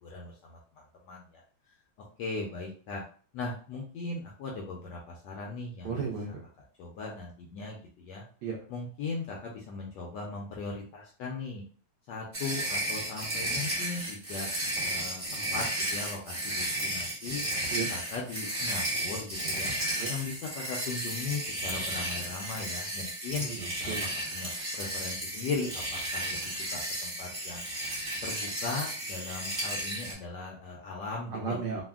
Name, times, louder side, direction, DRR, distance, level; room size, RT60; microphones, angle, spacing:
voice 1, 0.0-0.6 1.0-1.4 2.2-3.0 3.3-6.0 6.8-8.2 8.7-11.6 12.1-14.5 14.8-15.7 15.9-17.4 17.7-19.7 20.1-23.5 23.8-23.9 24.3-27.6 28.2-31.7, left 4 dB, 75° left, -1 dB, 1.0 m, -38 dB
voice 2, 5.8-6.4 8.4-8.6 17.7-17.9 19.9-20.1 23.4-24.1 31.3-31.8, right 5 dB, 75° right, -1 dB, 1.0 m, -34 dB
sound 1, 12.3-30.1, right 1 dB, 35° right, 0.9 m, -33 dB
3.4 x 2.1 x 2.3 m, 0.43 s
omnidirectional pair, 2.3 m